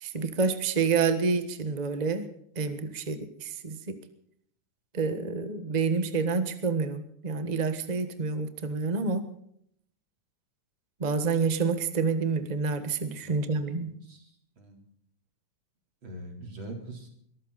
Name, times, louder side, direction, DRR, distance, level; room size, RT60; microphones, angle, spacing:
voice 1, 0.0-2.3 2.5-4.0 4.9-9.2 11.0-13.9, right 4 dB, 60° right, 10 dB, 0.4 m, -28 dB
voice 2, 13.2-14.8 16.0-17.1, right 1 dB, 40° right, 3 dB, 4.5 m, -44 dB
22.0 x 14.0 x 4.1 m, 0.67 s
omnidirectional pair, 3.3 m